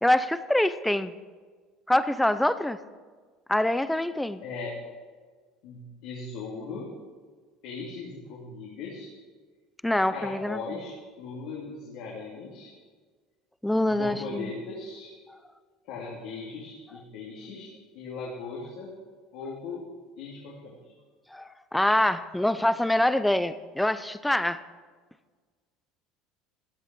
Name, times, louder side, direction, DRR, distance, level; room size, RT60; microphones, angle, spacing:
voice 1, 0.0-1.1 1.9-2.8 3.5-4.4 9.8-10.6 13.6-14.5 21.3-21.4 21.7-24.6, left 1 dB, 5° left, 13 dB, 0.5 m, -25 dB
voice 2, 4.4-4.8 5.6-6.9 7.6-9.1 10.1-12.7 13.8-15.1 15.8-17.7 17.9-18.9 19.3-19.8 20.2-20.9, left 4 dB, 70° left, -3 dB, 2.7 m, -38 dB
15.0 x 8.5 x 6.1 m, 1.5 s
cardioid pair, 135°, 0 cm